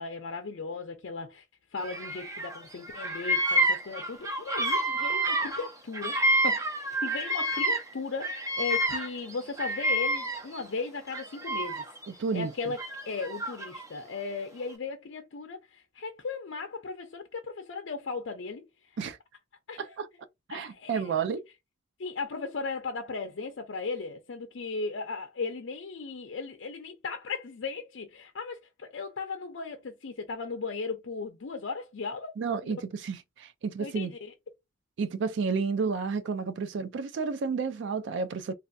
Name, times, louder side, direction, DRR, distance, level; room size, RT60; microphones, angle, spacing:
voice 1, 0.0-1.4 1.7-6.2 6.4-6.7 7.0-11.8 12.3-12.8 13.1-18.7 19.7-19.9 20.5-21.2 22.0-32.3 32.6-32.8 33.8-34.3, left 4 dB, 65° left, 0.5 m, -36 dB
Bird vocalization bird call bird song, 1.8-2.6 2.8-7.9 8.2-10.6 11.1-12.1 12.8-13.9, right 1 dB, 15° right, 0.6 m, -29 dB
voice 2, 12.1-12.5 19.0-19.2 19.8-20.1 20.5-21.4 32.4-34.1 35.0-38.5, right 5 dB, 65° right, 0.4 m, -31 dB
3.3 x 2.3 x 2.5 m
head